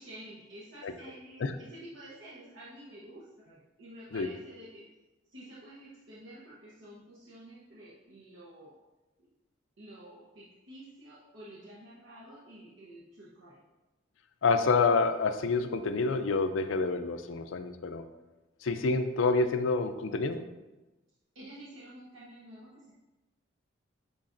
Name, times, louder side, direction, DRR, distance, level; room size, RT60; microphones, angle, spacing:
voice 1, 0.0-4.9 5.3-8.7 9.8-13.6 21.3-22.9, right 1 dB, 75° right, -7 dB, 1.0 m, -50 dB
voice 2, 14.4-18.0 18.6-20.4, left 4 dB, 75° left, 9 dB, 0.5 m, -28 dB
9.8 x 3.9 x 2.6 m, 1.1 s
head